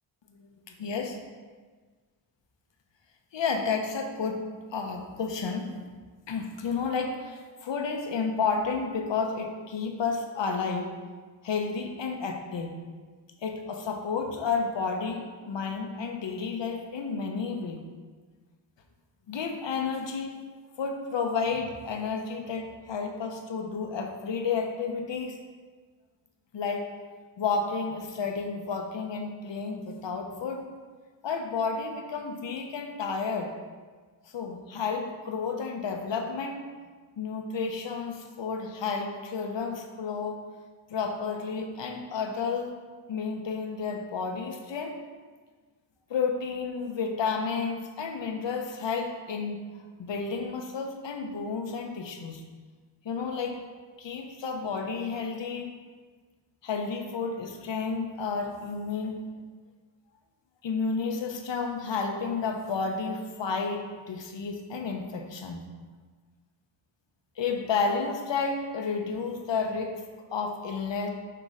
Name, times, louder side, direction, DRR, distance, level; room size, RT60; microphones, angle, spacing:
voice 1, 0.3-1.1 3.3-4.4 4.7-5.8 6.3-10.9 11.4-12.7 13.4-17.8 19.3-20.3 20.8-25.4 26.5-26.9 27.4-30.6 31.2-33.5 34.3-36.6 37.2-40.4 40.9-42.7 43.1-45.0 46.1-49.6 50.0-52.4 53.0-53.6 54.0-55.7 56.6-59.2 60.6-65.6 67.4-70.0 70.3-71.1, left 5 dB, 65° left, 3 dB, 0.9 m, -31 dB
6.7 x 2.9 x 4.9 m, 1.5 s
cardioid pair, 55°, 47 cm